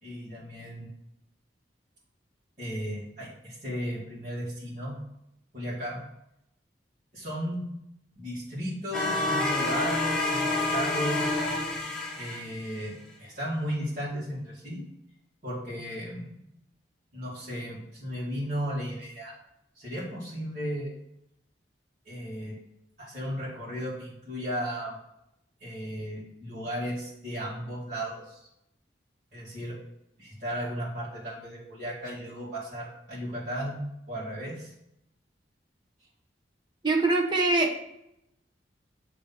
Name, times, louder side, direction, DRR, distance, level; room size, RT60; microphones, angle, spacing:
voice 1, 0.0-0.9 2.6-5.0 5.5-6.0 7.1-7.7 8.1-11.5 12.1-14.8 15.4-16.4 17.1-19.3 19.8-20.9 22.1-22.5 23.0-24.9 25.6-28.5 29.3-29.8 30.2-33.8 34.1-34.7, equal, 50° right, -10 dB, 2.3 m, -35 dB
sound 1, 8.9-12.9, left 2 dB, 5° left, 1.2 m, -28 dB
voice 2, 36.8-37.8, right 2 dB, 25° right, 0 dB, 1.0 m, -23 dB
7.8 x 3.4 x 5.4 m, 0.80 s
head